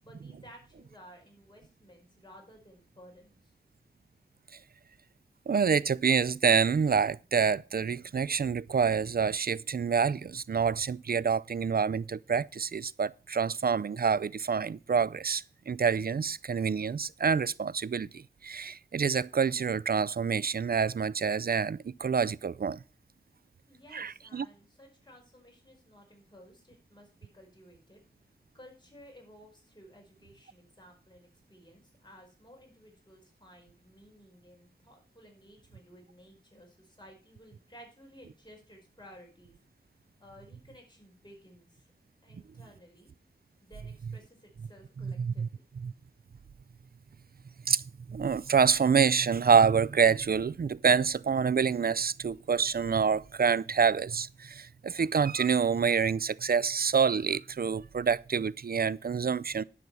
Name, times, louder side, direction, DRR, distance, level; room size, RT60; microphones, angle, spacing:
voice 1, 0.0-3.5 23.7-28.0 28.5-39.6 40.2-41.9 42.2-43.1 43.6-45.6, equal, 25° left, 5.3 m, -55 dB
voice 2, 5.5-22.8 23.9-24.5 45.0-45.5 45.8-45.9 47.7-47.8 48.1-59.6, right 6 dB, 60° right, 0.4 m, -27 dB
11.0 x 6.0 x 6.9 m
wide cardioid pair, 55°, 18 cm